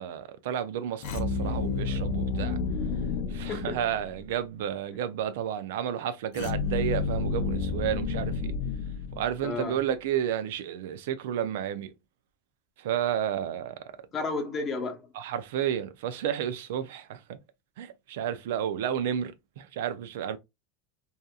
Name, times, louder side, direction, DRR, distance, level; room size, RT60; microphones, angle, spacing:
voice 1, 0.0-2.6 3.3-8.4 9.2-11.9 12.8-13.7 15.2-17.2 17.8-20.4, right 9 dB, 80° right, 0.4 m, -31 dB
sound 1, 1.0-4.3 6.3-9.6, left 4 dB, 65° left, 0.5 m, -30 dB
voice 2, 3.5-3.8 9.4-9.8 14.1-15.1, left 3 dB, 35° left, 0.8 m, -32 dB
2.7 x 2.3 x 2.3 m
supercardioid pair, 115°, 0 cm